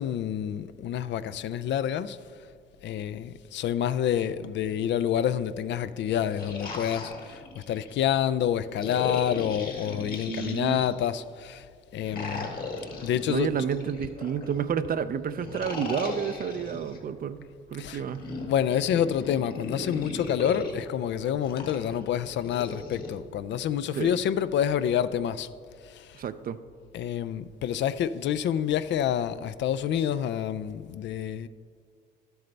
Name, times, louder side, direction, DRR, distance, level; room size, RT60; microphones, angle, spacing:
voice 1, 0.0-2.2 2.8-11.7 11.9-12.5 13.0-13.5 17.8-18.0 18.5-25.5 25.8-26.2 26.9-31.5, left 9 dB, 65° left, 0.4 m, -28 dB
sound 1, 6.2-8.0 8.8-11.1 12.0-14.6 15.4-17.0 18.0-20.8 21.4-23.1, left 3 dB, 50° left, 1.5 m, -37 dB
voice 2, 10.3-10.8 13.3-18.2 24.0-24.2 26.1-26.6, right 7 dB, 45° right, 0.4 m, -30 dB
12.0 x 7.9 x 3.3 m
cardioid pair, 90°, 20 cm